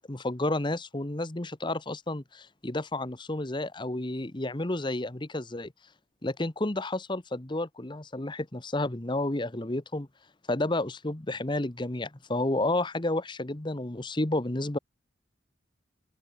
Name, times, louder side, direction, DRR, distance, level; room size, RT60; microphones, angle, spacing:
voice 1, 0.1-5.7 6.2-10.1 10.5-14.8, left 2 dB, 25° left, 1.0 m, -31 dB
open air
head